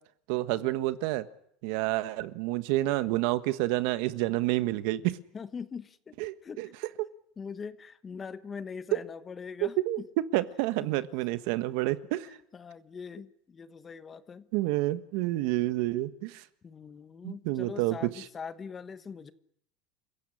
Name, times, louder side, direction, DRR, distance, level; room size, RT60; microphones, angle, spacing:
voice 1, 0.3-1.3 1.6-5.2 6.2-6.7 9.6-12.3 14.5-16.4 17.2-18.2, right 17 dB, 65° right, 13 dB, 1.4 m, -29 dB
voice 2, 5.3-6.2 6.4-6.6 7.4-10.1 12.5-14.5 16.6-19.3, left 6 dB, 20° left, 12 dB, 1.3 m, -42 dB
28.5 x 15.5 x 9.9 m, 0.70 s
cardioid pair, 150°, 0 cm